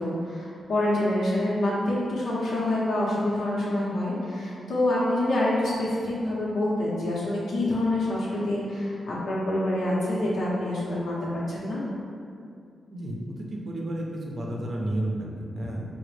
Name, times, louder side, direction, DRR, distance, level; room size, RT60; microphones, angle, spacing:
voice 1, 0.0-11.2 11.5-11.8, left 1 dB, 75° left, -8 dB, 0.8 m, -26 dB
voice 2, 12.9-15.8, right 1 dB, 45° right, -2 dB, 0.6 m, -32 dB
4.9 x 2.1 x 3.2 m, 2.4 s
wide cardioid pair, 110°, 0 cm